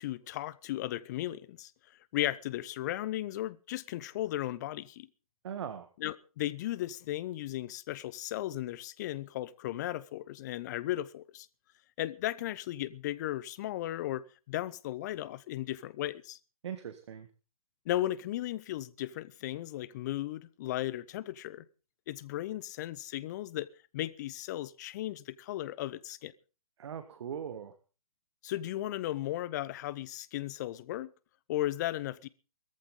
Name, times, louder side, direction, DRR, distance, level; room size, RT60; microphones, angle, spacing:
voice 1, 0.0-1.7 2.1-5.1 6.0-11.5 12.0-16.4 17.9-21.6 22.1-23.7 23.9-26.3 28.4-31.1 31.5-32.3, left 14 dB, 30° left, 0.8 m, -36 dB
voice 2, 5.4-5.9 16.6-17.3 26.8-27.7, right 8 dB, 50° right, 1.7 m, -40 dB
19.5 x 14.0 x 3.8 m
figure-of-eight pair, 140°, 19 cm